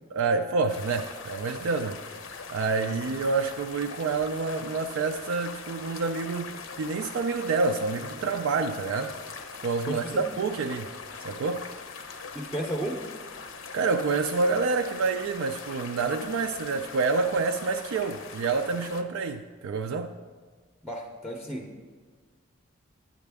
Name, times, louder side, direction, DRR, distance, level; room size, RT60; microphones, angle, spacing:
voice 1, 0.1-2.1 2.5-9.1 9.6-10.9 11.2-11.7 13.7-20.1, right 4 dB, 85° right, 0.4 m, -28 dB
sound 1, 0.7-19.0, left 5 dB, 85° left, 0.6 m, -42 dB
voice 2, 9.9-10.2 12.3-13.0 20.8-21.9, right 1 dB, 5° left, 0.5 m, -33 dB
8.9 x 8.8 x 3.5 m
head